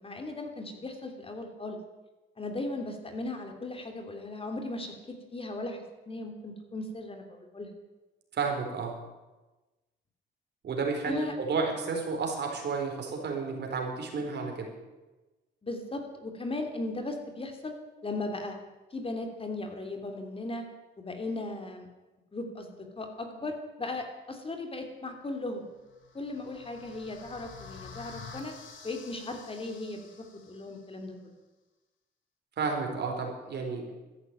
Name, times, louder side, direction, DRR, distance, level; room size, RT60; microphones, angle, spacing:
voice 1, 0.0-1.8 2.4-5.8 6.1-7.7 11.1-11.3 15.6-17.7 18.0-18.6 18.9-20.6 21.0-21.9 22.3-25.6 26.1-28.5 28.8-31.1, left 2 dB, 30° left, 4 dB, 2.8 m, -37 dB
voice 2, 8.3-8.9 10.6-14.7 32.6-33.9, right 4 dB, 60° right, 2 dB, 4.4 m, -32 dB
sound 1, 25.8-30.9, left 5 dB, 75° left, 2.8 m, -49 dB
13.5 x 11.0 x 9.0 m, 1.1 s
cardioid pair, 90°, 20 cm